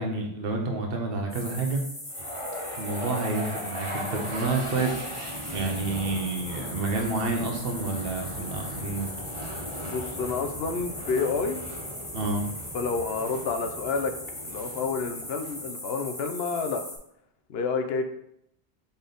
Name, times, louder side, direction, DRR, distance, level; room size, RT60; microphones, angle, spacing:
voice 1, 0.0-1.8 2.8-9.1 9.3-9.7 12.1-12.4, right 3 dB, 65° right, 2 dB, 1.0 m, -29 dB
sound 1, 1.3-17.0, left 1 dB, 15° left, 0.8 m, -39 dB
sound 2, 2.1-16.3, equal, 35° right, 0.7 m, -39 dB
voice 2, 9.8-11.6 12.7-14.1 14.4-16.8 17.5-18.1, left 4 dB, 75° left, 6 dB, 0.8 m, -29 dB
4.1 x 3.4 x 3.8 m, 0.76 s
omnidirectional pair, 1.0 m